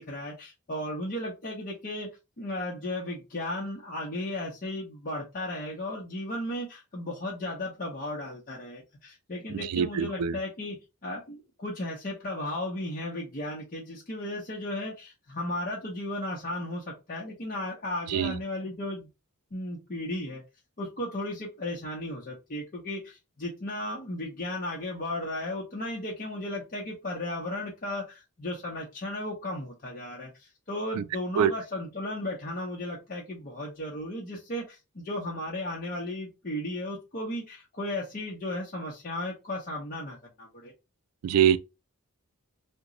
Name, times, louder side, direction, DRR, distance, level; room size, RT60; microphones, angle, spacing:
voice 1, 0.0-2.1 2.4-19.1 19.5-20.4 20.8-40.7, left 1 dB, 40° left, 0.7 m, -35 dB
voice 2, 9.5-10.4 18.1-18.3 30.9-31.0 31.4-31.5 41.2-41.6, right 8 dB, 85° right, 0.3 m, -24 dB
2.9 x 2.2 x 3.7 m
head